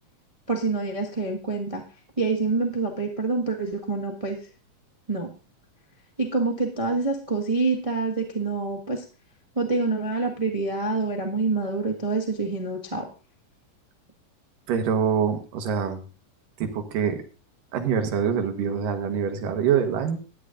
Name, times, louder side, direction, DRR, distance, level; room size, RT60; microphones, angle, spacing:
voice 1, 0.5-1.8 2.2-4.4 5.1-5.3 6.2-9.0 9.5-13.1, right 3 dB, 50° right, 0 dB, 0.4 m, -26 dB
voice 2, 14.7-16.0 16.6-17.2 17.7-20.2, right 7 dB, 90° right, 7 dB, 3.1 m, -25 dB
13.0 x 9.9 x 3.8 m, 0.34 s
omnidirectional pair, 3.7 m